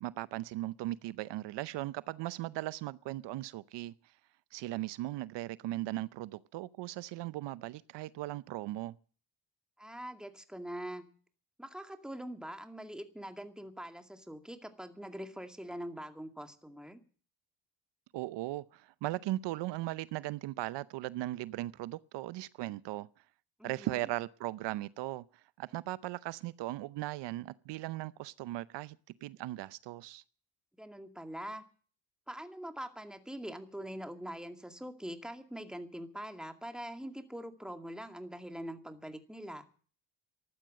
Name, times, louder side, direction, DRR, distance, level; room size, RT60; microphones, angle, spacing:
voice 1, 0.0-3.9 4.5-9.0 18.1-23.1 23.6-30.2, right 16 dB, 80° right, 0.7 m, -38 dB
voice 2, 9.8-11.1 11.6-17.0 23.6-24.1 30.8-31.6 32.3-39.7, equal, ahead, 2.2 m, -43 dB
14.5 x 12.0 x 7.5 m
cardioid pair, 105°, 42 cm